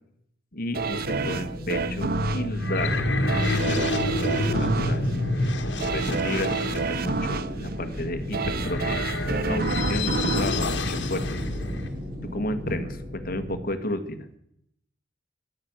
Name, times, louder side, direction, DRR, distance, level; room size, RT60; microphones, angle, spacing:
voice 1, 0.5-3.0 3.4-5.1 5.8-9.0 9.5-11.4 12.3-14.3, left 1 dB, 50° left, 9 dB, 1.7 m, -32 dB
sound 1, 0.7-13.6, equal, 25° right, 5.4 m, -36 dB
sound 2, 0.7-11.7 12.1-12.2, right 4 dB, 55° right, 0.8 m, -30 dB
sound 3, 1.4-11.9, left 2 dB, 65° left, 1.8 m, -28 dB
13.0 x 12.0 x 8.9 m, 0.74 s
head